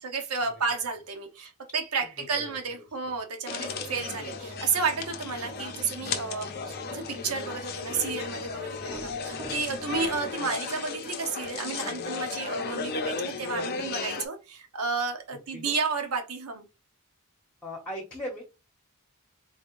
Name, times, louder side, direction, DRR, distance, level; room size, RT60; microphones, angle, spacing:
voice 1, 0.0-16.7, right 5 dB, 80° right, 0.9 m, -32 dB
voice 2, 2.2-2.6 9.4-9.8 15.5-15.7 17.6-18.4, equal, 10° left, 1.0 m, -39 dB
sound 1, 3.5-14.3, left 5 dB, 45° left, 0.6 m, -35 dB
sound 2, 3.6-10.3, equal, 20° right, 1.3 m, -46 dB
4.0 x 3.4 x 2.5 m
head